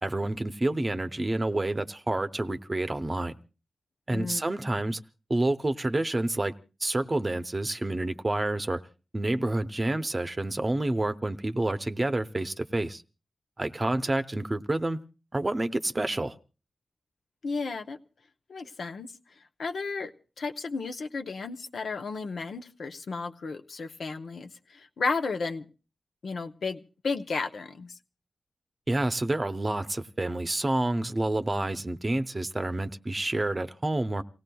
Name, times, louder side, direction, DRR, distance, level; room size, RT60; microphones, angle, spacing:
voice 1, 0.0-3.4 4.1-5.0 5.3-6.5 6.8-8.8 9.1-13.0 13.6-15.0 15.3-16.4 28.9-34.2, right 2 dB, 30° right, 0.7 m, -28 dB
voice 2, 4.1-4.4 17.4-18.0 18.5-19.1 19.6-20.1 20.4-25.7 26.2-27.9, left 4 dB, 85° left, 0.7 m, -33 dB
29.0 x 17.5 x 2.3 m
cardioid pair, 70°, 0 cm